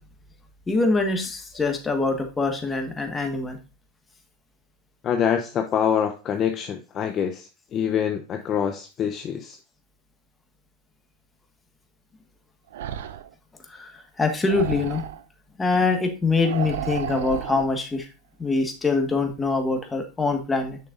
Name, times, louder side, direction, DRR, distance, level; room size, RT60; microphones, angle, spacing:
voice 1, 0.7-3.6 13.7-15.0 15.6-18.1 18.4-20.8, left 3 dB, 15° left, 5 dB, 1.4 m, -24 dB
voice 2, 5.0-9.6, left 8 dB, 35° left, 6 dB, 0.7 m, -25 dB
sound 1, 12.7-13.3 14.5-15.2 16.4-17.7, right 10 dB, 75° right, 0.5 m, -32 dB
6.5 x 6.3 x 2.5 m, 0.32 s
hypercardioid pair, 105°, 0 cm